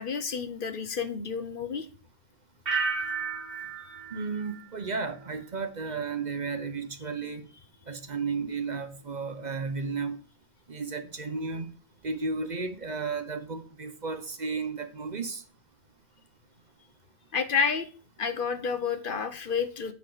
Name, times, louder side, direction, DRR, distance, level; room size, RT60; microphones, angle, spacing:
voice 1, 0.0-1.9 17.3-17.9 18.2-19.9, left 6 dB, 60° left, 0.9 m, -30 dB
sound 1, 2.7-5.5 5.8-6.3, right 5 dB, 65° right, 1.7 m, -34 dB
voice 2, 4.1-7.5 7.9-10.2 10.7-11.7 12.0-15.4, right 4 dB, 45° right, 1.0 m, -33 dB
8.3 x 5.9 x 4.9 m
omnidirectional pair, 1.0 m